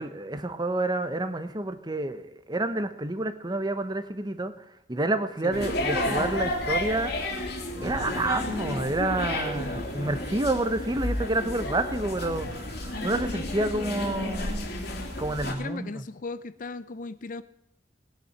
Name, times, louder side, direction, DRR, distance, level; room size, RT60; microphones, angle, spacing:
voice 1, 0.0-7.3 7.8-14.7 15.2-16.0, right 2 dB, 25° right, 10 dB, 1.1 m, -29 dB
sound 1, 5.5-15.5, left 1 dB, 65° left, 2.8 m, -31 dB
voice 2, 15.6-17.4, left 3 dB, 50° left, 14 dB, 0.6 m, -37 dB
19.0 x 10.5 x 5.9 m, 0.79 s
head